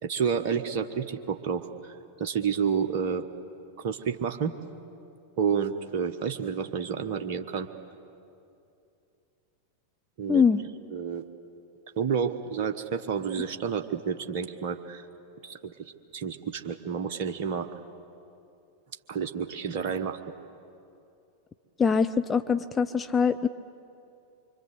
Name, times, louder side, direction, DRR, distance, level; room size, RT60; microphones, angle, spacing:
voice 1, 0.0-3.2 3.8-4.5 5.4-7.7 10.2-10.4 10.9-11.2 12.0-15.1 15.4-17.7 19.1-20.2, right 6 dB, 45° right, 6 dB, 1.1 m, -30 dB
voice 2, 10.3-10.6 21.8-23.5, left 6 dB, 15° left, 10 dB, 0.6 m, -23 dB
25.0 x 25.0 x 8.0 m, 2.6 s
figure-of-eight pair, 90°, 0 cm